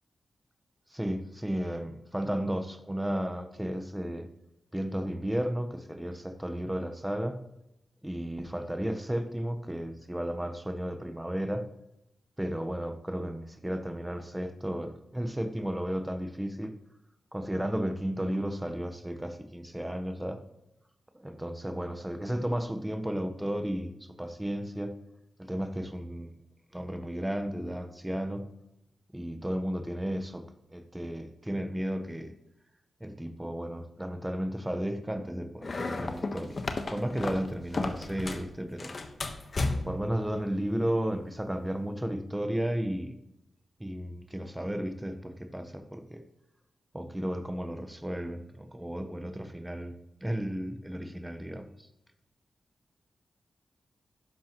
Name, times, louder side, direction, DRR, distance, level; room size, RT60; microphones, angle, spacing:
voice 1, 0.9-4.3 4.7-7.4 8.0-11.7 12.4-16.7 17.3-20.4 21.1-25.0 25.4-26.3 26.7-28.5 29.1-30.4 30.7-32.3 33.0-36.6 36.9-39.0 39.8-43.2 43.8-46.2 46.9-51.9, equal, 10° right, 8 dB, 1.1 m, -33 dB
sound 1, 35.6-38.5 38.8-40.1, left 3 dB, 50° left, 1.2 m, -33 dB
12.0 x 10.0 x 3.0 m, 0.85 s
cardioid pair, 60°, 0 cm